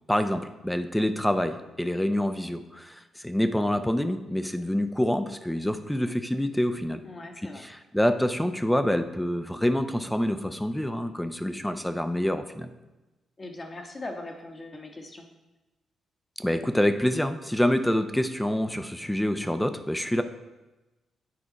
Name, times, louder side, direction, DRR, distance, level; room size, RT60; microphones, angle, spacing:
voice 1, 0.1-7.0 7.4-12.7 16.4-20.2, left 1 dB, 5° left, 9 dB, 0.5 m, -26 dB
voice 2, 7.0-7.7 13.4-15.3, left 2 dB, 35° left, 3 dB, 1.2 m, -40 dB
8.7 x 4.8 x 4.0 m, 1.1 s
cardioid pair, 70°, 0 cm